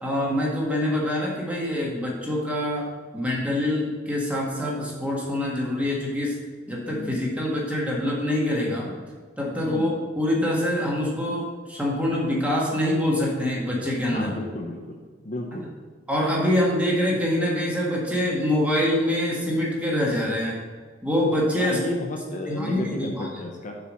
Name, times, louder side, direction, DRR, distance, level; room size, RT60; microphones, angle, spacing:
voice 1, 0.0-2.9 3.1-6.4 6.7-8.9 9.4-14.3 15.5-15.6 16.1-20.6 21.0-21.8 22.4-23.3, left 1 dB, 5° right, -4 dB, 1.6 m, -25 dB
voice 2, 9.6-10.0 14.1-15.0 15.2-15.6 21.6-23.7, left 1 dB, 40° left, 1 dB, 0.7 m, -32 dB
6.8 x 4.8 x 6.2 m, 1.5 s
head